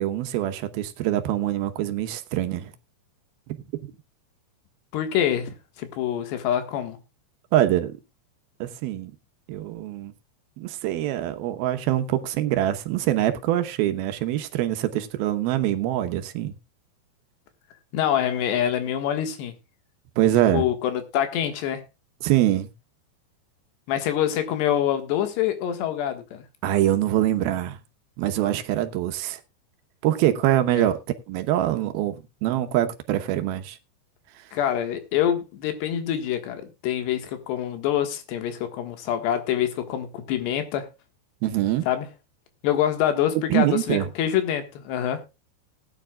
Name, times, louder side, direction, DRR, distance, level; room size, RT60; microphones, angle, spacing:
voice 1, 0.0-2.7 3.5-3.6 7.5-7.9 8.6-9.1 9.5-10.1 10.6-16.6 20.2-20.7 22.2-22.7 26.6-27.8 28.2-29.4 30.0-31.0 31.3-33.8 41.4-41.9 43.5-44.1, right 13 dB, 70° right, 2.7 m, -24 dB
voice 2, 4.9-7.0 17.9-19.6 20.5-21.8 23.9-26.4 30.7-30.9 34.5-40.9 41.9-42.1 42.6-45.2, left 10 dB, 80° left, 3.6 m, -25 dB
19.0 x 9.8 x 2.3 m
omnidirectional pair, 4.9 m